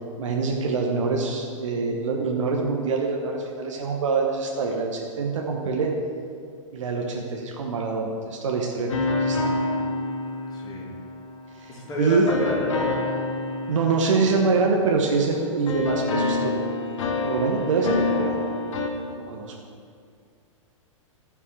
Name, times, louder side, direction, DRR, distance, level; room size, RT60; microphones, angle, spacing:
voice 1, 0.2-5.9 6.7-9.5 11.6-12.3 13.7-16.6 17.2-18.4 19.1-19.5, right 4 dB, 65° right, 0 dB, 1.2 m, -25 dB
sound 1, 8.9-11.6 12.3-15.3 15.7-18.9, left 3 dB, 60° left, 1.4 m, -27 dB
voice 2, 10.5-11.0 11.7-12.9, equal, 25° left, -3 dB, 2.8 m, -29 dB
14.5 x 5.8 x 4.7 m, 2.3 s
figure-of-eight pair, 105°, 17 cm